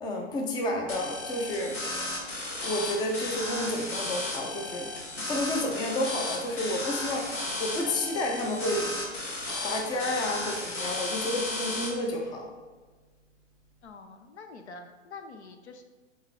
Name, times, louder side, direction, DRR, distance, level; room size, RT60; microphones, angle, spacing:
voice 1, 0.0-1.8 2.6-4.9 5.3-7.3 7.6-8.9 9.6-12.5, left 1 dB, 10° left, 1 dB, 0.6 m, -30 dB
sound 1, 0.9-11.9, left 2 dB, 45° left, 1.9 m, -34 dB
voice 2, 13.8-15.8, left 4 dB, 65° left, 6 dB, 0.7 m, -46 dB
5.7 x 4.4 x 4.2 m, 1.3 s
figure-of-eight pair, 105°, 37 cm